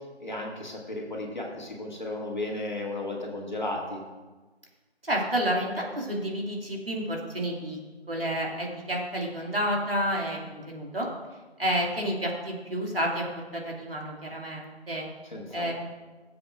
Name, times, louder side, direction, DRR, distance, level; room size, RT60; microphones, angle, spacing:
voice 1, 0.2-4.0 15.2-15.7, left 2 dB, 45° left, -1 dB, 1.9 m, -34 dB
voice 2, 5.0-7.8 8.1-11.1 11.6-13.3 13.5-15.0 15.5-15.7, equal, 60° right, -2 dB, 2.2 m, -30 dB
17.5 x 7.6 x 2.4 m, 1.3 s
figure-of-eight pair, 170°, 33 cm